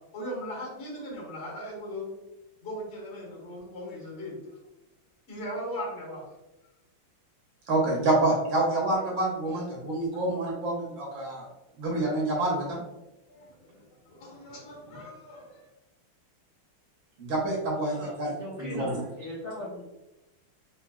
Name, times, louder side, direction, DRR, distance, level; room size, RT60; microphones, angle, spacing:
voice 1, 0.1-2.1 2.6-4.6 5.3-6.2 12.0-12.3 13.3-15.7, equal, 40° left, -4 dB, 1.4 m, -39 dB
voice 2, 7.7-11.5 11.8-12.8 17.2-18.3 18.6-19.0, right 2 dB, 70° right, -3 dB, 1.7 m, -27 dB
voice 3, 17.9-19.8, left 1 dB, 65° left, -7 dB, 0.5 m, -39 dB
3.9 x 3.1 x 2.3 m, 0.98 s
omnidirectional pair, 2.3 m